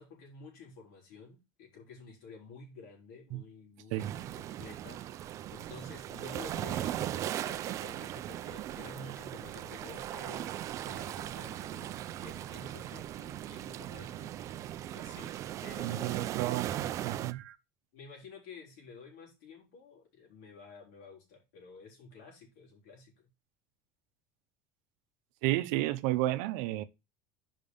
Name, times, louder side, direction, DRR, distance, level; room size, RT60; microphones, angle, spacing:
voice 1, 0.0-5.0 5.5-11.9 12.2-14.6 14.9-16.3 17.9-23.3, left 3 dB, 85° left, 3.9 m, -51 dB
sound 1, 4.0-17.3, right 12 dB, 35° right, 0.4 m, -38 dB
voice 2, 15.8-16.7 17.0-17.6 25.4-26.8, right 16 dB, 75° right, 0.7 m, -31 dB
5.3 x 5.2 x 5.4 m
cardioid pair, 155°, 9 cm